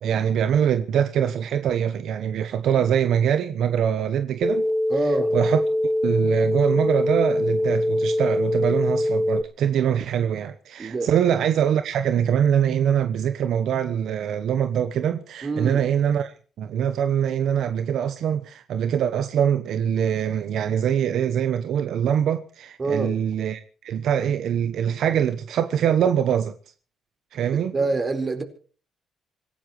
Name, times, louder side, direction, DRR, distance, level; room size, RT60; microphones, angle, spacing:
voice 1, 0.0-4.7 5.3-5.6 6.0-26.5 27.3-27.8, right 9 dB, 75° right, 1.0 m, -23 dB
sound 1, 4.4-9.4, left 1 dB, 10° left, 1.2 m, -23 dB
voice 2, 4.9-5.3 10.8-11.1 15.4-15.8 22.8-23.1 27.5-28.4, right 3 dB, 35° right, 4.3 m, -26 dB
26.0 x 17.0 x 3.2 m
cardioid pair, 90°, 0 cm